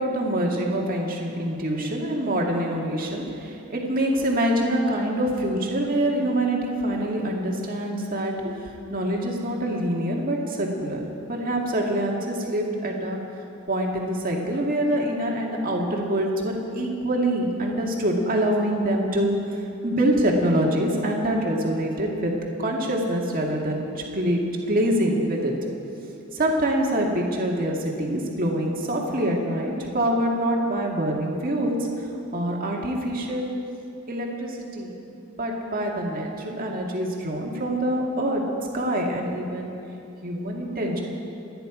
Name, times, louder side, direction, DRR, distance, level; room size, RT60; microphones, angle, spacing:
voice 1, 0.0-13.2 13.7-22.3 22.6-25.5 26.3-31.8 32.3-33.5 34.1-34.9 35.4-38.4 38.7-39.7 40.2-41.0, right 1 dB, 40° right, -1 dB, 2.1 m, -25 dB
28.0 x 10.5 x 5.0 m, 2.9 s
head